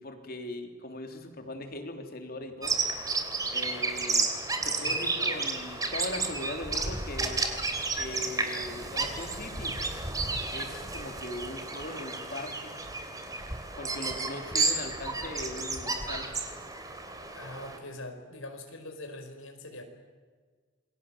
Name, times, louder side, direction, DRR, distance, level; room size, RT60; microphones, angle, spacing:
voice 1, 0.0-2.8 3.5-4.3 4.6-7.4 8.0-9.8 10.5-12.8 13.8-16.3, left 1 dB, 50° left, 5 dB, 3.4 m, -40 dB
Bird vocalization bird call bird song, 2.6-17.8, right 3 dB, 20° right, 3.1 m, -32 dB
voice 2, 4.8-5.3 17.3-19.8, left 1 dB, 90° left, 4 dB, 5.1 m, -43 dB
28.0 x 22.5 x 7.5 m, 1.5 s
head